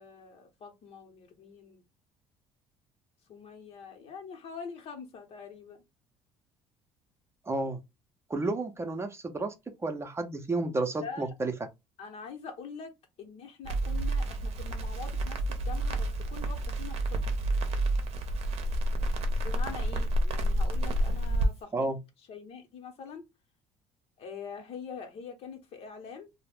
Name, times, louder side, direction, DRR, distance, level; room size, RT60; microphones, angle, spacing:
voice 1, 0.0-1.8 3.3-5.8 11.0-11.3 12.0-12.9 13.2-17.2 19.4-21.7 22.3-23.2 24.2-26.3, left 5 dB, 60° left, 0.9 m, -44 dB
voice 2, 7.5-7.8 8.3-9.5 9.8-11.5 21.7-22.0, right 2 dB, 20° right, 0.6 m, -31 dB
Crackle, 13.6-21.5, right 1 dB, 60° right, 0.7 m, -29 dB
2.3 x 2.1 x 3.4 m
supercardioid pair, 85°, 12 cm